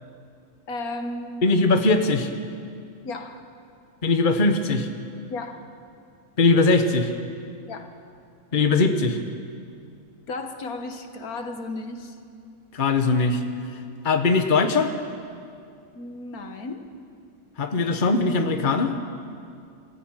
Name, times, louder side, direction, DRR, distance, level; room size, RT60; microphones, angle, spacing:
voice 1, 0.7-1.4 3.0-3.4 5.3-5.6 7.7-7.9 10.3-12.2 15.9-16.8, left 2 dB, 85° left, 6 dB, 1.8 m, -34 dB
voice 2, 1.4-2.3 4.0-4.9 6.4-7.1 8.5-9.2 12.7-13.4 14.0-14.9 17.6-18.9, left 3 dB, 35° left, 6 dB, 1.3 m, -20 dB
22.5 x 14.5 x 9.1 m, 2.3 s
omnidirectional pair, 1.5 m